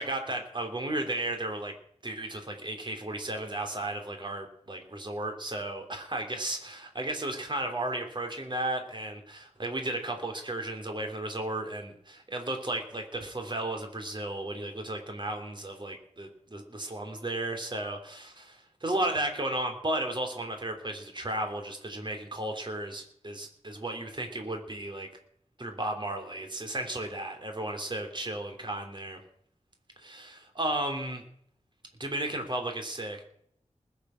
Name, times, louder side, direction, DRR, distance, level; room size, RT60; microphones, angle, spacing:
voice 1, 0.0-1.8 2.0-25.1 25.6-29.2 30.0-31.2 32.0-33.2, right 1 dB, 40° right, 4 dB, 3.2 m, -34 dB
20.5 x 7.2 x 5.8 m, 0.68 s
wide cardioid pair, 90°, 12 cm